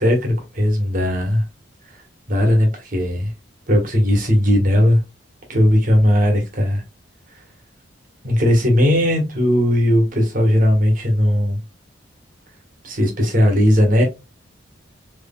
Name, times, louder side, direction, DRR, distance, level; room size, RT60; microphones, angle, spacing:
voice 1, 0.0-1.4 2.3-3.3 3.7-5.0 5.5-6.8 8.2-11.6 12.8-14.0, equal, 45° right, 1.2 m, -17 dB
3.6 x 3.1 x 2.2 m
head